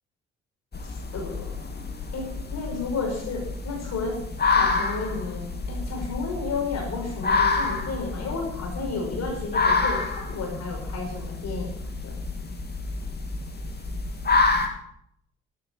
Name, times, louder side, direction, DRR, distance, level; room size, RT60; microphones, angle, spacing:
sound 1, 0.7-14.7, left 4 dB, 35° left, 2.9 m, -28 dB
voice 1, 0.8-1.5 2.1-4.2 4.5-12.1, left 4 dB, 60° left, 0 dB, 6.0 m, -32 dB
13.5 x 9.7 x 6.7 m, 0.72 s
hypercardioid pair, 40°, 30 cm